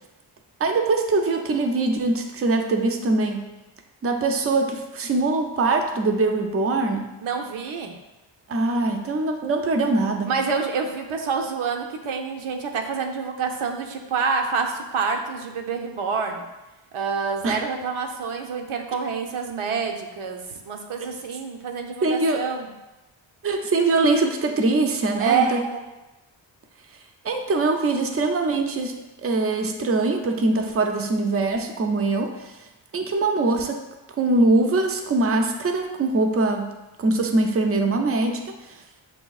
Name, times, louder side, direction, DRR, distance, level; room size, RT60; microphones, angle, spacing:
voice 1, 0.6-3.5 4.0-7.1 8.5-10.3 17.4-17.6 22.0-22.4 23.4-25.6 27.2-32.5 32.9-33.8 34.2-36.7 37.0-38.7, right 3 dB, 30° right, 4 dB, 0.4 m, -22 dB
voice 2, 7.2-8.0 10.3-16.4 16.9-22.7 25.2-25.8, right 5 dB, 85° right, 3 dB, 0.7 m, -27 dB
7.6 x 2.7 x 2.3 m, 1.0 s
wide cardioid pair, 140°, 48 cm